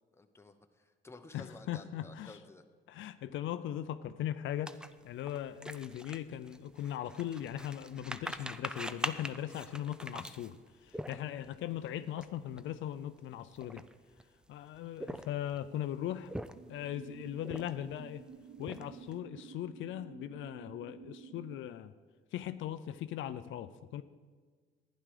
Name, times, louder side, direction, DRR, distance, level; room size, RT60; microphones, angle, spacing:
voice 1, 0.1-2.6, left 3 dB, 15° left, 6 dB, 0.9 m, -53 dB
voice 2, 1.3-2.4 2.9-4.7 5.0-13.8 14.5-16.3 16.7-18.2 18.6-21.9 22.3-24.0, left 11 dB, 80° left, 12 dB, 0.5 m, -39 dB
sound 1, 4.7-11.6 12.1-12.3 12.5-12.7 13.4-14.2 14.9-15.6 16.1-16.9 17.4-18.0 18.3-19.1, right 1 dB, 5° right, 0.4 m, -43 dB
sound 2, 16.5-21.6, right 7 dB, 80° right, 0.5 m, -52 dB
11.0 x 10.0 x 4.9 m, 1.5 s
cardioid pair, 90°, 20 cm